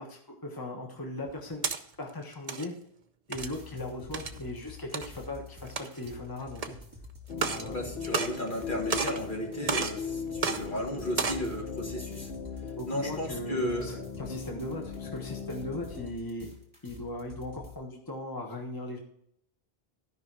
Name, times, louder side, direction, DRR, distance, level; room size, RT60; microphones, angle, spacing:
voice 1, 0.0-2.7 3.3-6.7 7.4-7.9 12.7-16.5 16.8-19.0, left 1 dB, 20° left, 1 dB, 1.3 m, -38 dB
sound 1, 1.3-1.8 2.3-2.7 3.3-3.6 4.1-4.4 4.9-5.1 5.6-6.1 6.6-6.7 7.3-7.7 8.0-8.6 8.9-9.2 9.7-10.0 10.4-10.6 11.1-11.5, right 5 dB, 40° right, 0.8 m, -31 dB
sound 2, 3.3-17.7, left 4 dB, 20° right, 2.8 m, -48 dB
sound 3, 7.3-16.1, left 5 dB, 75° left, 1.5 m, -39 dB
voice 2, 7.7-12.3 12.9-14.0, left 1 dB, 55° left, 0 dB, 2.2 m, -34 dB
13.0 x 5.6 x 4.7 m, 0.73 s
omnidirectional pair, 1.0 m